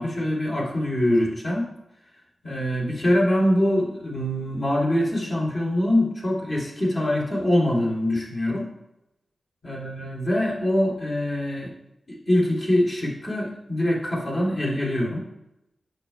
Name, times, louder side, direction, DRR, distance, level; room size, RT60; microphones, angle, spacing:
voice 1, 0.0-1.7 2.4-8.6 9.6-11.7 12.1-15.2, left 1 dB, 45° left, -4 dB, 2.8 m, -24 dB
8.8 x 6.9 x 2.2 m, 0.86 s
cardioid pair, 60°, 0 cm